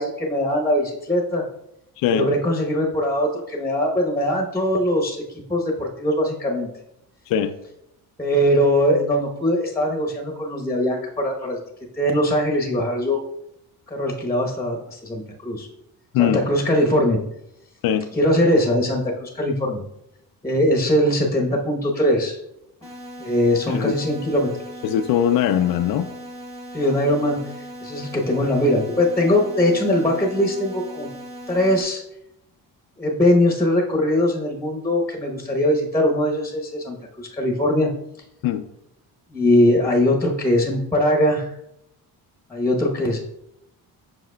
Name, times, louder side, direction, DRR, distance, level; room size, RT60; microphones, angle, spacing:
voice 1, 0.0-1.4 2.1-5.2 5.5-6.7 8.2-11.6 12.0-13.2 13.9-15.7 16.2-17.2 18.2-19.8 20.4-22.4 23.2-24.5 26.7-27.5 27.8-31.1 31.5-32.0 33.0-37.9 39.3-41.5 42.5-43.2, left 1 dB, 5° left, 0.9 m, -21 dB
voice 2, 2.0-2.3 7.3-7.6 16.1-16.4 17.8-18.1 23.7-23.9 24.8-26.1 38.4-38.7, left 10 dB, 70° left, 0.5 m, -21 dB
sound 1, 22.8-31.8, equal, 15° right, 1.4 m, -38 dB
7.7 x 5.9 x 2.2 m
cardioid pair, 130°, 36 cm